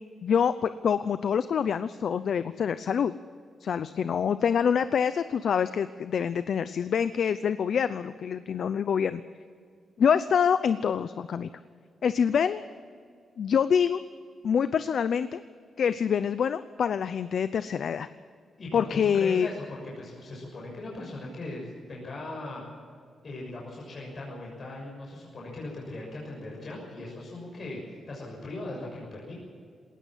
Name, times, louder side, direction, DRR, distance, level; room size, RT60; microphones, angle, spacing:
voice 1, 0.2-3.1 3.6-9.2 10.0-11.5 12.0-12.6 13.4-14.0 14.4-15.4 15.8-18.1 18.7-19.5, left 7 dB, 60° left, 13 dB, 0.6 m, -26 dB
voice 2, 18.6-22.6 23.2-29.3, left 2 dB, 45° left, -3 dB, 6.5 m, -39 dB
20.0 x 18.5 x 7.5 m, 2.1 s
wide cardioid pair, 130°, 0 cm